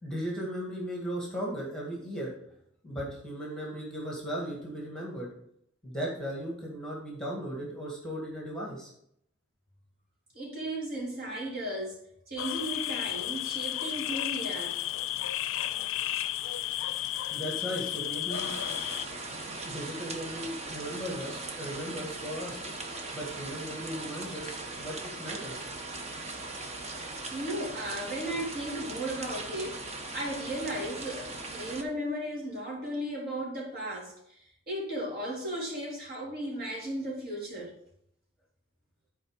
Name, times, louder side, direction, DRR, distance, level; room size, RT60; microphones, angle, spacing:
voice 1, 0.0-2.3 2.8-5.3 5.8-8.9 17.3-18.5 19.6-22.6 23.1-25.7, equal, 5° left, -3 dB, 2.0 m, -37 dB
voice 2, 10.3-12.0 12.3-14.8 27.3-29.8 30.1-37.7, right 1 dB, 50° right, -4 dB, 3.7 m, -35 dB
sound 1, 12.4-19.1, left 13 dB, 80° left, 0.4 m, -33 dB
sound 2, 18.3-31.8, right 2 dB, 35° right, 1.1 m, -39 dB
10.5 x 4.8 x 5.2 m, 0.72 s
head